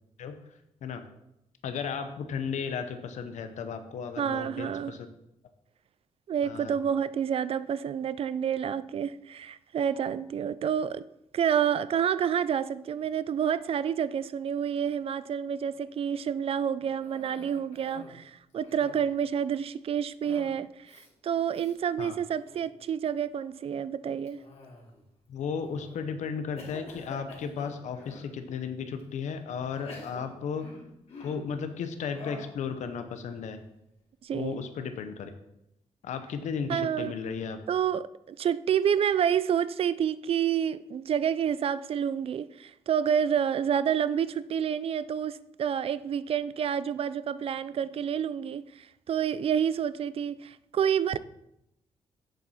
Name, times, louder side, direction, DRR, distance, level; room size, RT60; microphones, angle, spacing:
voice 1, 1.6-5.1 6.4-6.8 22.0-22.1 25.3-30.7 31.2-33.6 34.3-35.3 36.0-37.6, left 6 dB, 85° left, 0.8 m, -34 dB
voice 2, 4.2-4.9 6.3-11.1 11.3-24.4 34.2-34.6 36.7-37.1 37.7-51.2, right 8 dB, 55° right, 0.4 m, -29 dB
Cough, 17.0-18.2 18.5-19.2 20.2-20.6 20.9-21.1 21.5-21.7 22.3-22.7 24.3-25.1 25.7-26.0 26.6-28.3 29.0-29.1 29.7-31.5 32.1-32.6, left 3 dB, 60° left, 2.8 m, -47 dB
7.8 x 7.4 x 4.2 m
cardioid pair, 120°, 12 cm